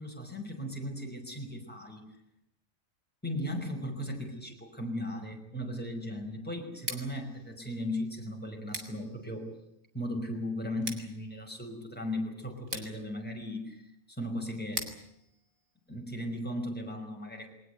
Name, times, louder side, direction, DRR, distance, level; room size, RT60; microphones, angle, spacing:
voice 1, 0.0-2.1 3.2-9.5 9.9-13.8 14.1-14.9 15.9-17.5, left 1 dB, 5° left, 1 dB, 5.4 m, -37 dB
Scissors, 6.7-16.5, right 3 dB, 55° right, 3.3 m, -46 dB
22.0 x 19.5 x 9.3 m, 0.78 s
omnidirectional pair, 1.7 m